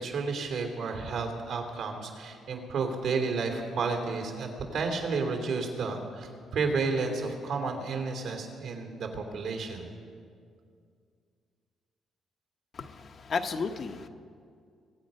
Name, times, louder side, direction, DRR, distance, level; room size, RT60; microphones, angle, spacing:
voice 1, 0.0-9.9, right 4 dB, 80° right, 2 dB, 3.1 m, -31 dB
voice 2, 12.7-14.1, left 5 dB, 50° left, 6 dB, 0.8 m, -33 dB
23.0 x 8.9 x 5.4 m, 2.2 s
cardioid pair, 90°, 0 cm